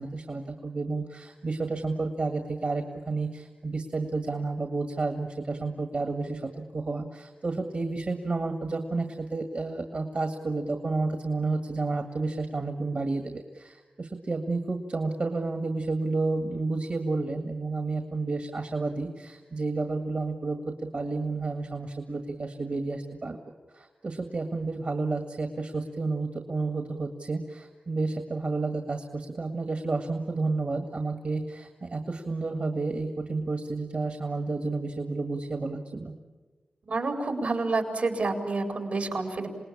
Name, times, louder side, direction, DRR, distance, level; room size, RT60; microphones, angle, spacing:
voice 1, 0.0-23.4 23.7-36.1, right 3 dB, 65° right, 5 dB, 1.8 m, -31 dB
voice 2, 36.9-39.5, right 3 dB, 85° right, 4 dB, 4.2 m, -28 dB
27.5 x 19.5 x 8.6 m, 1.3 s
wide cardioid pair, 60°, 3 cm